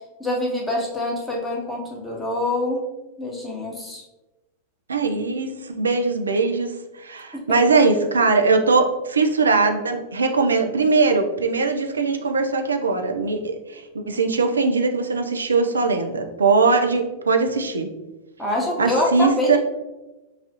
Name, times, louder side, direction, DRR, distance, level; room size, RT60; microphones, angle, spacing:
voice 1, 0.2-2.8 3.2-4.0 7.3-7.6 18.4-19.6, left 1 dB, 10° left, -3 dB, 0.9 m, -25 dB
voice 2, 4.9-17.9 18.8-19.6, right 4 dB, 75° right, 5 dB, 0.4 m, -21 dB
4.8 x 2.3 x 2.7 m, 1.0 s
figure-of-eight pair, 90°, 0 cm